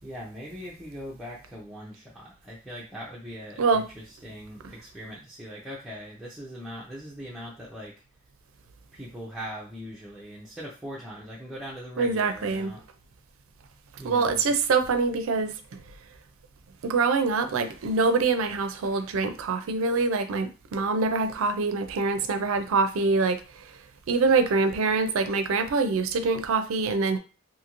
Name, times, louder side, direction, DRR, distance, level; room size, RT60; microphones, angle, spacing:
voice 1, 0.0-7.9 8.9-12.8 14.0-14.4, equal, ahead, -6 dB, 0.5 m, -40 dB
voice 2, 12.0-12.7 14.0-15.8 16.8-23.4 24.1-27.2, right 4 dB, 70° right, 8 dB, 0.4 m, -25 dB
2.7 x 2.5 x 2.9 m, 0.33 s
head